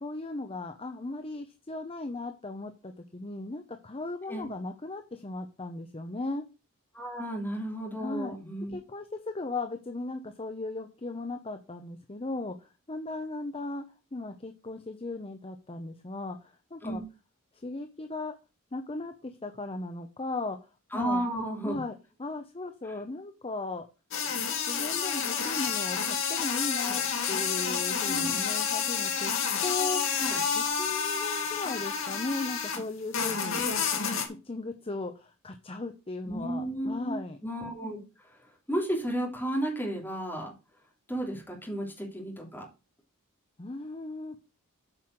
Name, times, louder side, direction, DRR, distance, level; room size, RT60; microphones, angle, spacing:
voice 1, 0.0-6.4 8.0-8.4 8.7-13.8 14.1-17.0 17.5-18.3 18.7-21.2 21.6-23.8 24.7-30.2 30.7-33.6 34.0-37.4 43.6-44.4, left 2 dB, 25° left, 6 dB, 0.8 m, -37 dB
voice 2, 6.9-8.8 16.8-17.0 20.9-21.8 22.8-23.0 28.1-28.4 30.2-30.4 33.5-33.6 36.3-40.5 41.1-42.7, right 1 dB, 10° left, -1 dB, 3.0 m, -33 dB
sound 1, 24.1-32.8 33.1-34.3, left 7 dB, 65° left, 2.3 m, -29 dB
9.0 x 5.6 x 6.3 m, 0.31 s
head